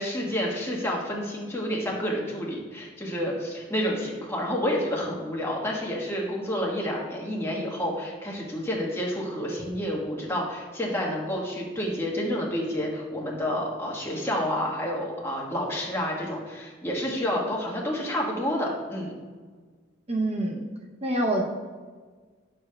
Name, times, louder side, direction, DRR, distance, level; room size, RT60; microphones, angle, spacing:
voice 1, 0.0-19.1, equal, 15° left, -3 dB, 1.3 m, -29 dB
voice 2, 20.1-20.7 21.0-21.4, right 1 dB, 35° right, -1 dB, 0.7 m, -26 dB
9.7 x 6.8 x 2.2 m, 1.5 s
head